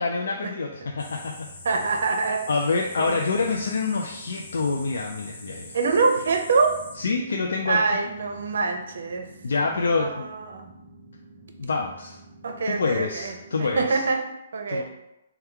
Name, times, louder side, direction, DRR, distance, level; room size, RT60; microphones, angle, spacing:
voice 1, 0.0-1.5 2.5-5.8 7.0-7.8 9.4-10.3 11.6-12.2 12.7-14.0 14.7-14.8, left 4 dB, 80° left, 1 dB, 0.4 m, -26 dB
Drum, 0.7-14.1, left 2 dB, 5° right, 0.9 m, -52 dB
sound 1, 1.0-7.0, left 2 dB, 50° left, 1.2 m, -44 dB
voice 2, 1.6-2.5 3.0-3.3 5.7-6.8 7.7-9.3 9.7-10.7 12.4-14.3 14.5-14.8, right 4 dB, 70° right, 4 dB, 0.6 m, -25 dB
sound 2, 3.6-13.6, right 3 dB, 35° right, 1.0 m, -51 dB
3.6 x 2.3 x 4.4 m, 0.89 s
hypercardioid pair, 155°, 0 cm